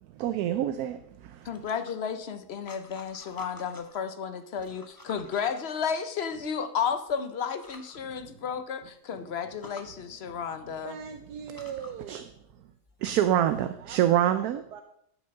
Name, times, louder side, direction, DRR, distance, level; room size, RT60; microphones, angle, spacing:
voice 1, 0.2-1.0 12.1-12.2 13.0-14.6, right 11 dB, 70° right, 11 dB, 1.0 m, -25 dB
voice 2, 1.4-11.0, left 7 dB, 55° left, 10 dB, 0.8 m, -33 dB
sound 1, 1.5-4.1 4.5-6.4 7.1-7.2 7.5-8.0 8.5-8.6 8.9-9.0 9.4-9.9 10.9-11.0 11.4-13.5, left 2 dB, 15° left, 0.7 m, -51 dB
voice 3, 10.8-12.2 13.8-14.8, right 7 dB, 85° right, 6 dB, 1.3 m, -41 dB
11.5 x 6.1 x 5.4 m, 0.72 s
omnidirectional pair, 1.7 m